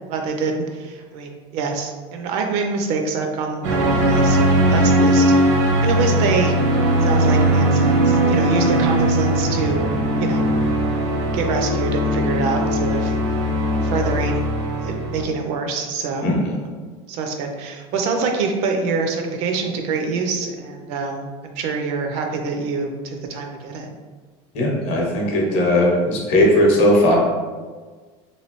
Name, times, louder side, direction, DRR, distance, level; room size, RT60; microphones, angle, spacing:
voice 1, 0.1-5.3 5.8-6.5 7.0-9.9 10.2-10.4 11.3-13.2 13.8-14.5 14.8-16.3 17.1-23.9, right 4 dB, 45° right, 3 dB, 0.4 m, -25 dB
sound 1, 3.6-15.2, right 1 dB, 85° right, 0.7 m, -19 dB
voice 2, 16.2-16.5 24.5-27.2, left 1 dB, 45° left, -2 dB, 0.8 m, -17 dB
3.0 x 2.6 x 2.9 m, 1.4 s
cardioid pair, 175°, 15 cm